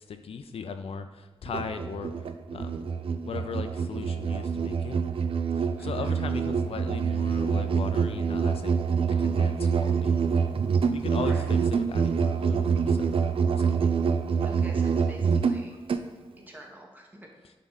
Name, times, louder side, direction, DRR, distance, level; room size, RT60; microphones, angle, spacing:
voice 1, 0.1-2.1 2.5-2.9 3.2-5.0 5.6-8.7 9.2-10.2 10.9-13.3 13.6-13.7 17.4-17.5, left 5 dB, 85° left, 8 dB, 0.5 m, -37 dB
Musical instrument, 1.5-16.1, right 6 dB, 70° right, 0.4 m, -26 dB
voice 2, 5.8-6.1 11.1-11.4 14.4-15.7 16.5-17.3, right 1 dB, 20° right, 1 dB, 1.1 m, -46 dB
9.3 x 3.7 x 4.0 m, 1.3 s
wide cardioid pair, 165°, 10 cm